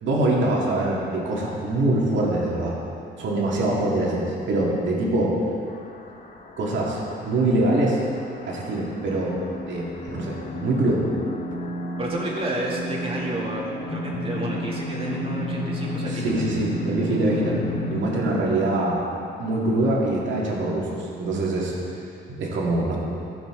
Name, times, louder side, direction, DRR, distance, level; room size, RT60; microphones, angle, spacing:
voice 1, 0.0-2.7 3.2-5.4 6.6-8.0 8.5-9.4 9.7-11.0 16.0-17.6 17.9-19.0 19.4-21.7 22.3-23.0, right 2 dB, 70° right, -4 dB, 2.1 m, -24 dB
sound 1, 5.7-18.0, left 1 dB, 40° left, 1.0 m, -32 dB
voice 2, 12.0-16.4, right 1 dB, 30° right, -4 dB, 2.4 m, -31 dB
15.5 x 6.0 x 3.7 m, 2.6 s
cardioid pair, 90°, 20 cm